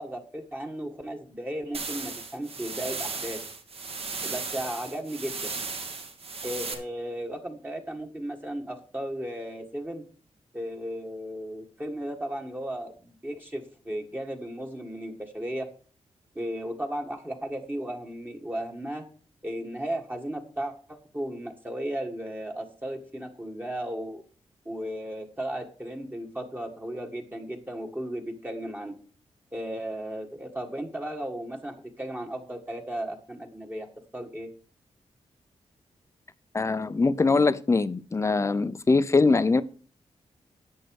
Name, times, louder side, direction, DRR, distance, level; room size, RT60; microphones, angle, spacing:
voice 1, 0.0-3.4 4.2-5.5 6.4-10.0 10.5-15.7 16.3-19.0 19.4-24.2 24.6-28.9 29.5-33.9 34.1-34.5, right 1 dB, 15° right, 2 dB, 1.7 m, -35 dB
sound 1, 1.7-6.7, right 4 dB, 60° right, 2.9 m, -36 dB
voice 2, 36.5-39.6, left 3 dB, 25° left, 14 dB, 0.7 m, -22 dB
11.0 x 8.2 x 4.8 m, 0.41 s
wide cardioid pair, 135°, 11 cm